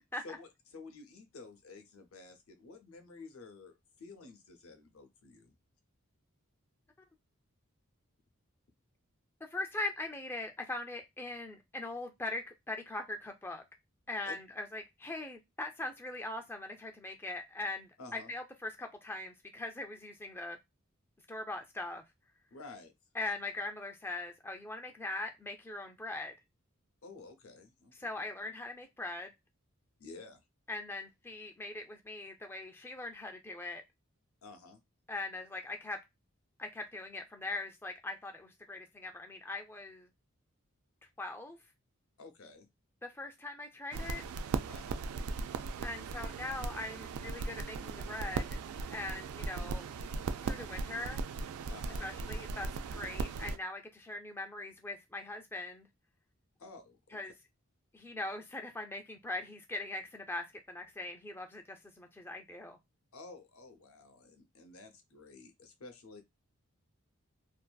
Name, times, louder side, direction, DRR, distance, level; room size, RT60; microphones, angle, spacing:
voice 1, 0.2-5.5 14.2-14.3 18.0-18.3 22.5-22.9 27.0-27.9 30.0-30.4 34.4-34.8 42.2-42.7 44.7-45.0 50.1-50.5 51.7-52.1 56.6-57.2 63.1-66.2, left 3 dB, 75° left, 0.6 m, -51 dB
voice 2, 9.4-13.6 14.1-20.6 21.3-22.0 23.1-26.3 28.0-29.3 30.7-33.8 35.1-36.0 36.6-40.1 41.2-41.6 43.0-44.2 45.8-48.5 48.9-49.9 50.4-51.2 52.0-52.7 53.0-55.9 57.1-57.3 57.9-62.8, left 2 dB, 10° left, 0.3 m, -41 dB
sound 1, 43.9-53.6, right 4 dB, 85° right, 0.3 m, -38 dB
2.5 x 2.4 x 2.2 m
head